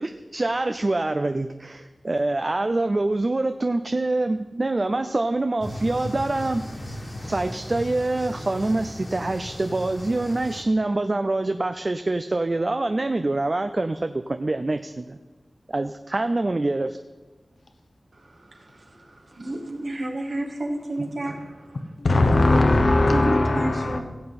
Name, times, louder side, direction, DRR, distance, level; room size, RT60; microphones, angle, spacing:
voice 1, 0.0-6.7 7.2-15.2 15.7-17.0, right 2 dB, 45° right, 8 dB, 0.5 m, -25 dB
sound 1, 5.6-10.6, left 1 dB, 55° left, 2.0 m, -36 dB
voice 2, 18.1-21.9 23.1-24.0, right 1 dB, 75° right, -1 dB, 2.1 m, -32 dB
voice 3, 22.0-24.0, left 2 dB, 75° left, 5 dB, 1.0 m, -19 dB
16.0 x 7.7 x 4.2 m, 1.2 s
wide cardioid pair, 50°, 0 cm